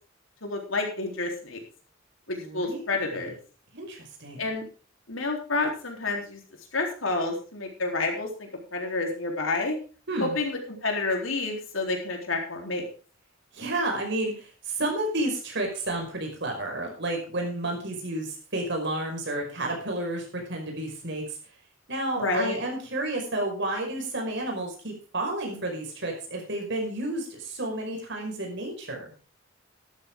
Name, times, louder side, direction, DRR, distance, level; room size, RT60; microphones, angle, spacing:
voice 1, 0.4-1.6 2.3-3.4 4.4-4.6 5.1-6.4 6.7-9.8 10.2-12.8 22.2-22.6, left 3 dB, 85° left, 2 dB, 3.8 m, -29 dB
voice 2, 2.4-2.9 3.7-4.5 10.1-10.4 13.5-21.2 21.9-29.1, right 1 dB, 60° right, 1 dB, 5.4 m, -31 dB
13.0 x 12.0 x 3.8 m, 0.37 s
head